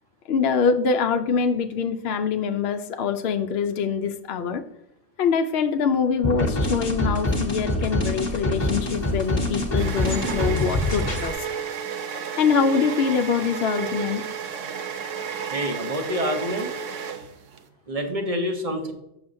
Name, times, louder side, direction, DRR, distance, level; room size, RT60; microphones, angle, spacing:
voice 1, 0.3-4.6 5.2-11.4 12.4-14.2, left 6 dB, 65° left, 7 dB, 0.7 m, -24 dB
sound 1, 6.2-11.3, left 1 dB, 20° left, 1.3 m, -25 dB
sound 2, 8.9-17.7, right 7 dB, 85° right, 1.1 m, -32 dB
voice 2, 15.5-16.7 17.9-18.9, equal, 35° right, 3 dB, 0.9 m, -27 dB
7.1 x 6.9 x 2.6 m, 0.84 s
omnidirectional pair, 1.3 m